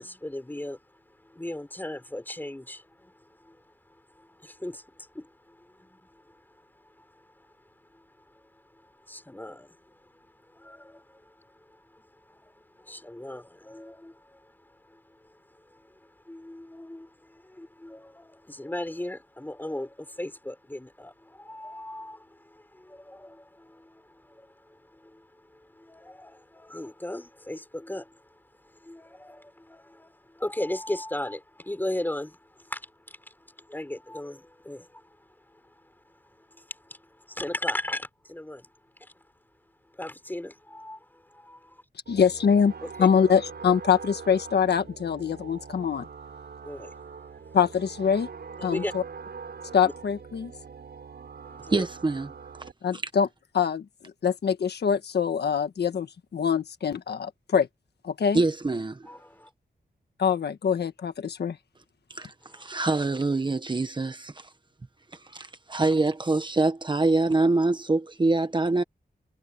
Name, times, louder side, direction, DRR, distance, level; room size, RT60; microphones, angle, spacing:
voice 1, 0.0-38.7 39.0-39.1 39.9-41.8 42.8-43.1 46.6-47.4 48.6-48.9 49.8-49.9 51.4-51.9 59.1-59.5 62.4-62.8, left 1 dB, 10° left, 4.4 m, -39 dB
voice 2, 42.1-42.7 43.0-46.1 47.5-48.3 48.6-49.0 49.7-50.5 52.8-53.3 53.5-53.8 54.2-57.7 58.0-58.4 60.2-61.6, left 7 dB, 85° left, 1.5 m, -24 dB
sound 1, 42.1-52.7, right 5 dB, 75° right, 6.9 m, -43 dB
voice 3, 51.7-52.3 52.9-53.0 58.3-59.1 62.1-64.5 65.1-68.8, right 2 dB, 30° right, 1.2 m, -25 dB
wide cardioid pair, 115°, 17 cm